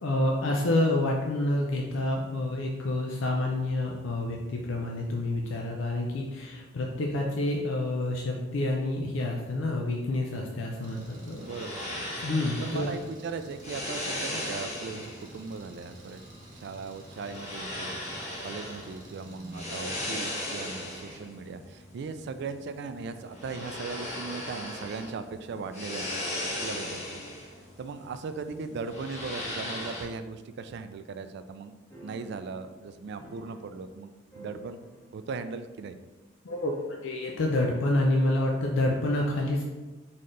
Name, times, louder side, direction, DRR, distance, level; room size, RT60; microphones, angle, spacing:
voice 1, 0.0-11.5 12.2-12.9 36.4-36.7 37.0-39.6, left 1 dB, 80° left, -1 dB, 0.5 m, -28 dB
Engine, 10.8-20.0, right 1 dB, 40° right, 0.9 m, -51 dB
sound 1, 11.1-30.0, left 1 dB, 35° left, 1.2 m, -38 dB
voice 2, 11.4-11.8 12.6-16.2 16.5-18.0 18.4-26.1 26.6-27.2 27.8-31.7 32.0-34.8 35.1-36.0, right 4 dB, 60° right, 10 dB, 0.3 m, -38 dB
sound 2, 31.9-34.0 34.3-35.3 35.6-35.7 36.5-37.3, equal, 15° left, 1.3 m, -51 dB
4.2 x 3.7 x 3.2 m, 1.2 s
head